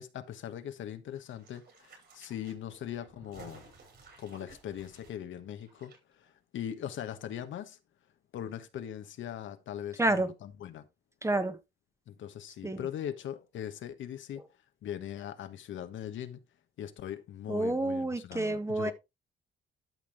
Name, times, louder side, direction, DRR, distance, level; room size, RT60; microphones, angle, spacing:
voice 1, 0.0-3.6 4.2-7.8 8.3-10.9 12.1-14.4 14.8-16.4 16.8-18.9, left 10 dB, 75° left, 1.4 m, -40 dB
sound 1, 1.1-6.0 6.3-6.4, right 3 dB, 55° right, 7.2 m, -55 dB
voice 2, 11.2-11.6 12.6-12.8 17.5-18.9, right 2 dB, 15° right, 1.3 m, -29 dB
12.5 x 6.0 x 3.5 m
cardioid pair, 90°, 20 cm